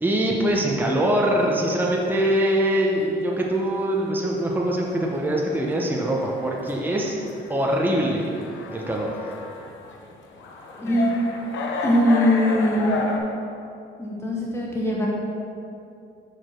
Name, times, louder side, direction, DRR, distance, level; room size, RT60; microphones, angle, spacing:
voice 1, 0.0-7.2 7.5-8.3 8.7-9.1, right 1 dB, 10° right, -2 dB, 0.8 m, -23 dB
sound 1, 1.4-13.2, left 3 dB, 75° left, 0.9 m, -34 dB
voice 2, 10.8-11.1 11.8-13.1 14.0-15.1, left 1 dB, 15° left, -4 dB, 1.4 m, -21 dB
6.5 x 5.0 x 4.6 m, 2.6 s
cardioid pair, 90°, 20 cm